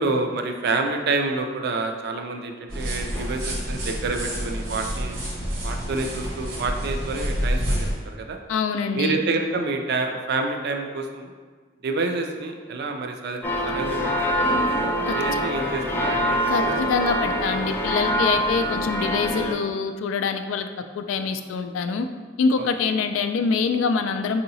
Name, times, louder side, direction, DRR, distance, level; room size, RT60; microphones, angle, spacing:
voice 1, 0.0-5.2 5.6-8.4 8.9-11.3 11.8-13.4 13.6-14.1 14.4-14.6 15.1-16.8 22.6-23.0, right 3 dB, 55° right, 4 dB, 0.4 m, -28 dB
sound 1, 2.7-7.9, equal, 80° right, 0.9 m, -28 dB
voice 2, 8.5-9.2 15.1-15.4 16.5-20.7 20.9-22.1 22.4-24.4, left 5 dB, 85° left, 8 dB, 0.3 m, -25 dB
sound 2, 13.4-19.5, equal, 10° left, 0.4 m, -24 dB
4.7 x 2.8 x 2.7 m, 1.5 s
head